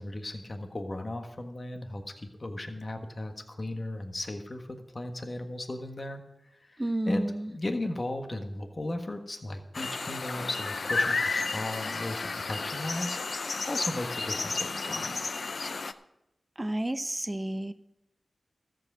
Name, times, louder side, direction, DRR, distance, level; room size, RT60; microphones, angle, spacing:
voice 1, 0.0-4.7 4.9-6.2 6.6-15.2, left 1 dB, 45° left, 5 dB, 1.5 m, -36 dB
voice 2, 6.8-7.3 16.6-17.7, right 1 dB, 20° right, 12 dB, 0.7 m, -30 dB
sound 1, 9.7-15.9, left 3 dB, 75° left, 0.5 m, -32 dB
13.5 x 7.8 x 6.2 m, 0.89 s
cardioid pair, 50°, 0 cm